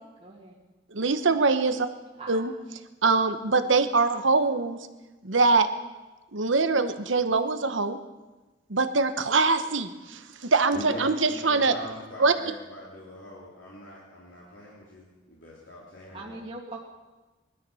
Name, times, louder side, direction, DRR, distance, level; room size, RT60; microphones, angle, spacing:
voice 1, 0.2-0.6 2.2-2.4 4.2-4.3 16.1-16.8, right 2 dB, 30° right, -3 dB, 2.2 m, -41 dB
voice 2, 0.9-1.9 2.3-2.5 3.0-4.8 5.2-5.7 6.3-8.0 8.7-11.7 12.2-12.3, right 4 dB, 85° right, 9 dB, 1.1 m, -23 dB
voice 3, 10.7-16.4, equal, 80° left, -5 dB, 3.4 m, -42 dB
20.0 x 12.5 x 5.6 m, 1.2 s
head